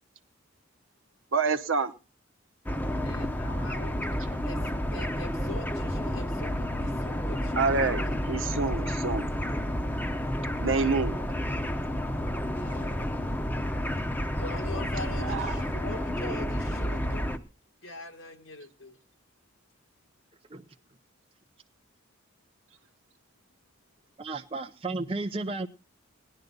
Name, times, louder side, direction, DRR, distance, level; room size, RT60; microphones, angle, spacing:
voice 1, 1.3-1.9 7.6-8.0 8.3-9.3 10.6-11.2 15.2-15.6, right 4 dB, 80° right, 1.0 m, -27 dB
sound 1, 2.7-17.4, equal, 10° left, 0.9 m, -30 dB
voice 2, 3.0-4.0 4.5-8.6 12.5-13.4 14.4-17.2 17.8-19.0, left 2 dB, 80° left, 1.9 m, -43 dB
voice 3, 24.2-25.7, right 3 dB, 30° right, 0.6 m, -33 dB
18.5 x 11.0 x 4.0 m
head